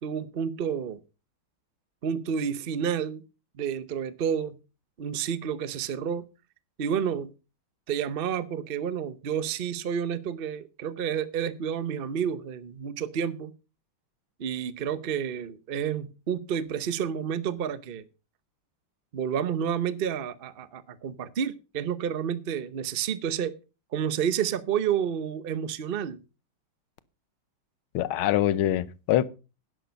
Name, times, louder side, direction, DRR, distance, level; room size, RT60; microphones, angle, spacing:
voice 1, 0.0-1.0 2.0-3.2 3.6-4.5 5.0-6.2 6.8-7.3 7.9-13.5 14.4-18.0 19.1-23.5 23.9-26.2, right 8 dB, 90° right, 0.5 m, -30 dB
voice 2, 27.9-29.2, left 12 dB, 80° left, 1.6 m, -24 dB
11.5 x 10.5 x 5.2 m
omnidirectional pair, 2.3 m